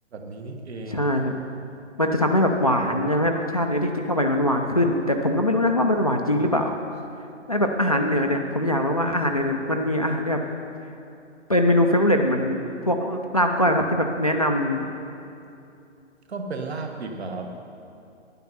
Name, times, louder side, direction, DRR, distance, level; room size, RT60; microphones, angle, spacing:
voice 1, 0.1-1.1 16.3-17.5, right 3 dB, 55° right, 4 dB, 1.5 m, -34 dB
voice 2, 0.9-1.3 2.0-6.7 7.5-10.4 11.5-14.9, left 1 dB, 30° left, 4 dB, 0.4 m, -22 dB
11.0 x 9.2 x 5.5 m, 2.7 s
hypercardioid pair, 160°, 38 cm